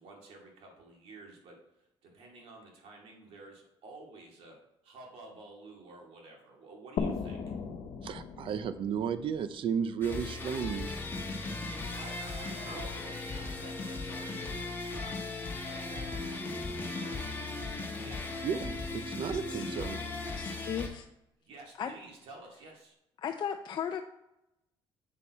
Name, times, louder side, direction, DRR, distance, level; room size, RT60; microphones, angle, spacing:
voice 1, 0.0-7.5 11.5-13.2 13.6-15.2 15.7-18.5 21.4-23.0, right 2 dB, 80° right, 0 dB, 2.4 m, -51 dB
sound 1, 7.0-10.5, left 5 dB, 70° left, 1.0 m, -38 dB
voice 2, 8.0-11.0 18.4-20.0, right 7 dB, 60° right, 12 dB, 0.6 m, -34 dB
sound 2, 10.0-20.9, left 3 dB, 20° left, 1.4 m, -37 dB
Dishes pots and pans, 11.4-13.9, right 1 dB, 40° right, 3.2 m, -50 dB
voice 3, 20.4-21.1 21.8-21.9 23.2-24.0, left 8 dB, 50° left, 5 dB, 0.5 m, -35 dB
7.4 x 6.5 x 4.2 m, 0.88 s
cardioid pair, 120°, 10 cm